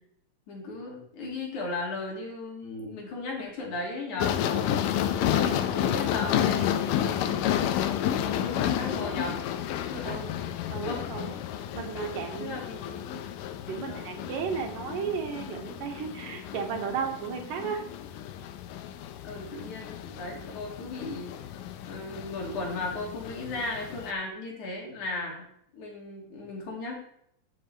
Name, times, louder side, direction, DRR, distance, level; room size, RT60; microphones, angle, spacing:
voice 1, 0.5-4.6 5.1-9.4 9.8-10.2 10.7-11.0 12.4-12.8 13.9-14.1 19.2-21.4 21.9-25.5 25.7-26.9, left 2 dB, 65° left, -2 dB, 3.7 m, -36 dB
sound 1, 4.2-24.1, left 10 dB, 85° left, 2.2 m, -31 dB
voice 2, 10.0-10.4 10.7-11.3 11.7-13.2 13.7-17.9, right 6 dB, 85° right, 3 dB, 3.1 m, -34 dB
13.5 x 7.2 x 3.3 m, 0.73 s
omnidirectional pair, 3.8 m